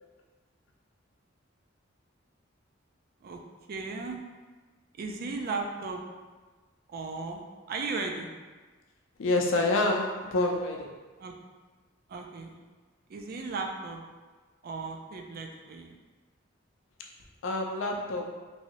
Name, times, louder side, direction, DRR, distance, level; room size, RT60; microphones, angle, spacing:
voice 1, 3.7-4.2 5.0-6.0 6.9-8.3 11.2-11.3 12.1-12.6 13.1-14.0 14.6-16.0, right 4 dB, 50° right, 3 dB, 0.4 m, -36 dB
voice 2, 9.2-10.9 17.4-18.3, left 2 dB, 70° left, 1 dB, 0.5 m, -27 dB
3.0 x 2.7 x 2.9 m, 1.3 s
head